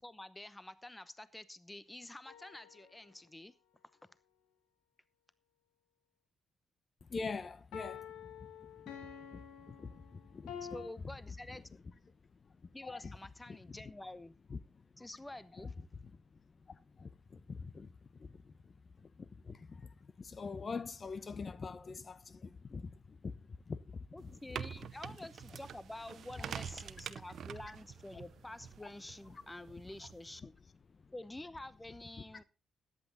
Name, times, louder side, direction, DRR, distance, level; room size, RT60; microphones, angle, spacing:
voice 1, 0.0-3.5 10.6-11.8 12.7-14.4 15.0-15.7 24.1-30.6 31.1-32.4, left 1 dB, 15° left, 0.9 m, -48 dB
sound 1, 2.3-3.3 7.7-10.9, left 8 dB, 75° left, 2.3 m, -49 dB
voice 2, 7.1-8.1 9.0-10.5 12.8-13.0 14.5-14.6 16.7-17.9 18.2-18.5 19.2-23.3 23.7-24.3 29.3-29.4, left 4 dB, 45° left, 1.0 m, -44 dB
sound 2, 24.2-30.4, right 8 dB, 65° right, 0.7 m, -47 dB
14.0 x 10.0 x 4.0 m
hypercardioid pair, 50°, 0 cm